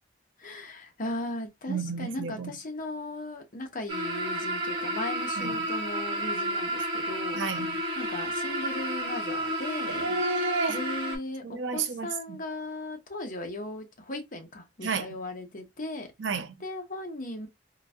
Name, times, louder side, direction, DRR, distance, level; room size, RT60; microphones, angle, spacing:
voice 1, 0.4-7.4 8.0-10.0 10.7-16.1 16.6-17.5, left 1 dB, 45° left, 0.8 m, -37 dB
voice 2, 1.7-2.5 5.4-5.7 7.3-7.8 9.9-10.8 11.4-12.4 14.8-15.1 16.2-16.5, right 4 dB, 85° right, 0.6 m, -32 dB
sound 1, 3.9-11.2, right 1 dB, 30° right, 1.4 m, -31 dB
3.8 x 2.6 x 2.3 m
head